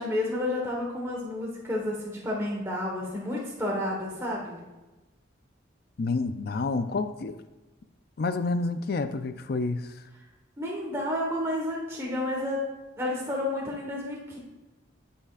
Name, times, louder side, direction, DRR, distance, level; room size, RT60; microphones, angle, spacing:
voice 1, 0.0-4.6 10.6-12.6 13.0-14.4, left 1 dB, 15° right, -3 dB, 1.2 m, -31 dB
voice 2, 6.0-7.4 8.2-9.9, left 3 dB, 50° left, 10 dB, 0.4 m, -29 dB
11.5 x 5.5 x 2.4 m, 1.1 s
head